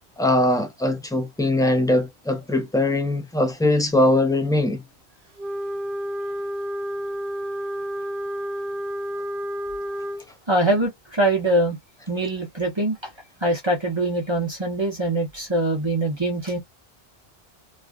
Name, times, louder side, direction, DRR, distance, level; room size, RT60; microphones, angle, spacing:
voice 1, 0.2-4.8, left 1 dB, 5° left, 0.4 m, -21 dB
Wind instrument woodwind instrument, 5.4-10.2, equal, 60° right, 1.0 m, -30 dB
voice 2, 10.5-11.8 12.1-13.1 13.4-16.6, right 1 dB, 30° right, 0.9 m, -23 dB
3.2 x 2.4 x 2.4 m
omnidirectional pair, 1.1 m